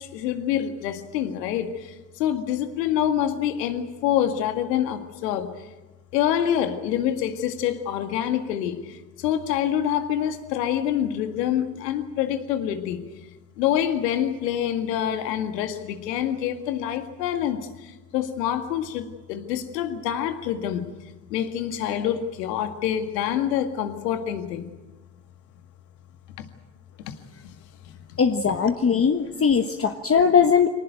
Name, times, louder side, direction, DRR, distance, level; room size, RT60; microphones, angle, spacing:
voice 1, 0.0-1.7 2.2-5.5 6.1-8.8 9.2-13.0 13.6-17.6 18.1-20.9 21.3-24.7, left 10 dB, 80° left, 8 dB, 2.0 m, -26 dB
voice 2, 28.2-30.7, left 6 dB, 30° left, 6 dB, 1.4 m, -20 dB
24.5 x 18.5 x 9.0 m, 1.2 s
hypercardioid pair, 60°, 48 cm